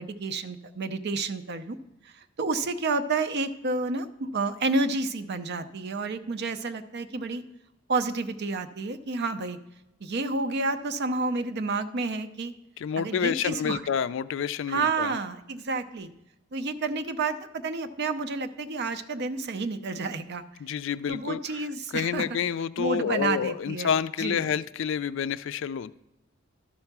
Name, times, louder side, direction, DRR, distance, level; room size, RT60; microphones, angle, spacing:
voice 1, 0.0-1.8 2.0-7.4 7.9-9.6 10.0-12.5 13.0-13.8 14.7-16.1 16.5-20.4 21.1-22.2 22.8-23.9 24.2-24.5, right 3 dB, 55° right, 9 dB, 0.6 m, -30 dB
voice 2, 12.8-15.1 20.6-21.7 21.9-25.9, left 7 dB, 65° left, 15 dB, 0.3 m, -29 dB
12.5 x 4.4 x 5.9 m, 0.90 s
head